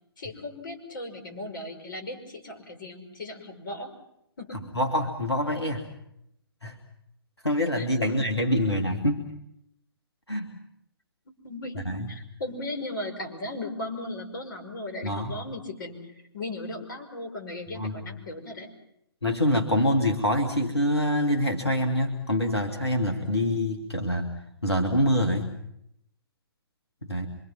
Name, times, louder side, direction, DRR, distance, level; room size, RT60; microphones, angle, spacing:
voice 1, 0.2-3.9 4.4-4.7 7.7-8.3 8.6-8.8 11.3-18.7, left 2 dB, 55° left, 5 dB, 5.4 m, -37 dB
voice 2, 4.7-5.9 6.6-6.8 7.4-9.3 10.3-10.5 11.9-12.1 15.0-15.4 17.8-18.0 19.2-24.3 24.6-25.5 27.1-27.3, left 1 dB, 85° left, 3 dB, 2.6 m, -25 dB
26.5 x 24.5 x 6.0 m, 0.77 s
figure-of-eight pair, 130°, 13 cm